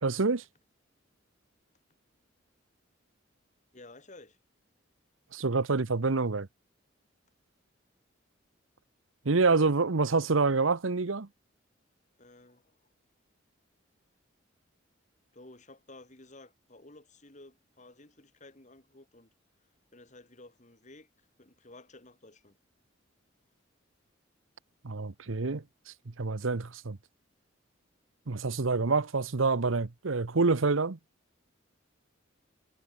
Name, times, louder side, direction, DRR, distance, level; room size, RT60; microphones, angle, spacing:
voice 1, 0.0-0.4 5.3-6.5 9.2-11.3 24.8-25.6 26.2-27.0 28.3-31.0, right 4 dB, 85° right, 0.9 m, -27 dB
voice 2, 3.7-4.4 12.2-12.8 15.3-19.3 19.9-22.6, left 2 dB, 40° left, 2.9 m, -53 dB
head